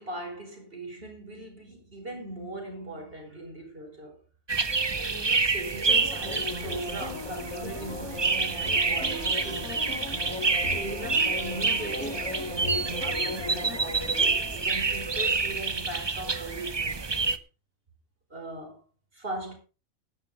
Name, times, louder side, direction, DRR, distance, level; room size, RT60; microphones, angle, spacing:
voice 1, 0.0-4.2 5.0-9.7 10.7-17.1 18.3-18.8 19.1-19.5, right 1 dB, 40° right, 5.3 m, -39 dB
sound 1, 4.5-17.4, right 4 dB, 25° right, 0.6 m, -28 dB
sound 2, 5.9-15.3 15.6-15.7, left 3 dB, 80° left, 3.1 m, -38 dB
12.0 x 10.5 x 5.2 m
omnidirectional pair, 1.4 m